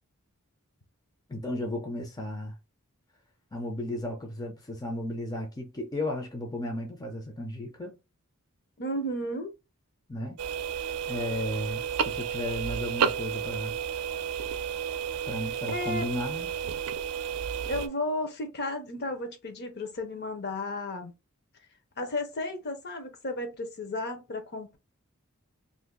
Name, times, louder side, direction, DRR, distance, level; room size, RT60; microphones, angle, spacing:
voice 1, 1.3-2.5 3.5-8.0 10.1-10.4 11.1-13.8 15.3-16.6, left 1 dB, 15° left, 0.5 m, -34 dB
voice 2, 8.8-9.5 15.7-16.1 17.7-21.1 22.0-24.8, left 1 dB, 50° left, 0.8 m, -33 dB
sound 1, 10.4-17.9, right 7 dB, 80° right, 0.5 m, -32 dB
2.6 x 2.6 x 3.7 m
head